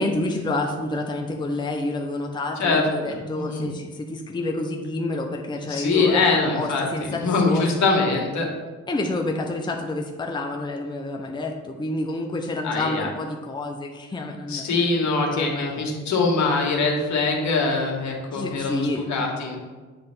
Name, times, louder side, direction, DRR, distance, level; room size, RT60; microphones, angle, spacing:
voice 1, 0.0-7.7 8.9-15.8 18.3-19.1, left 2 dB, 15° left, 1 dB, 0.7 m, -28 dB
voice 2, 2.6-3.7 5.6-8.5 12.6-13.1 14.5-19.6, left 3 dB, 65° left, 0 dB, 1.6 m, -23 dB
7.7 x 3.2 x 6.0 m, 1.3 s
cardioid pair, 90°, 30 cm